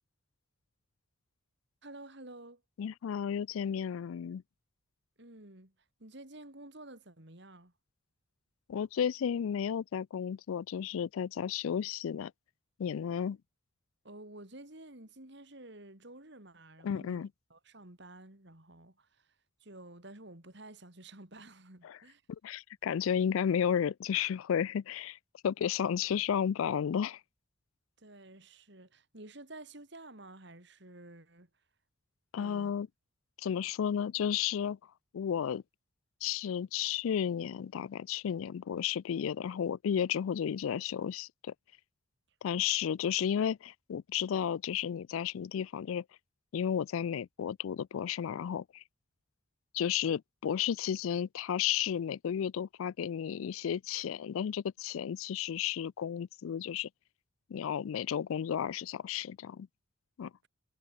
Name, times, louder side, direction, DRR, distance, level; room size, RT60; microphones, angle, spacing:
voice 1, 1.8-2.6 5.2-5.7 6.0-7.7 14.0-17.2 17.5-19.3 19.6-22.2 28.0-31.5 32.4-32.7 43.0-43.1, right 2 dB, 55° right, 3.2 m, -51 dB
voice 2, 2.8-4.4 8.7-12.3 12.8-13.4 16.8-17.3 21.8-22.0 22.4-25.2 25.4-27.2 32.3-32.9 33.4-34.8 35.1-35.6 36.2-41.5 42.4-46.0 46.5-48.8 49.7-56.9 57.5-59.7 60.2-60.3, left 8 dB, 75° left, 0.3 m, -33 dB
head